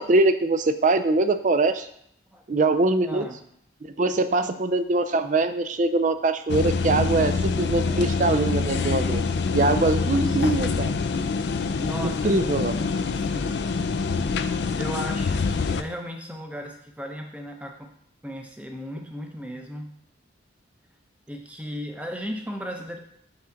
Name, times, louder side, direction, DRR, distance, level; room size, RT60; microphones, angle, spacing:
voice 1, 0.0-1.9 2.5-3.3 3.8-9.2 9.5-10.9 12.0-12.8, right 2 dB, 40° right, 10 dB, 0.4 m, -23 dB
voice 2, 3.1-3.4 7.7-7.9 10.4-10.5 11.8-12.4 13.1-13.7 14.8-17.9 18.2-19.9 21.3-23.0, equal, 5° right, 3 dB, 0.7 m, -36 dB
sound 1, 6.5-15.8, left 4 dB, 60° left, 0.4 m, -25 dB
5.9 x 5.7 x 3.8 m, 0.70 s
head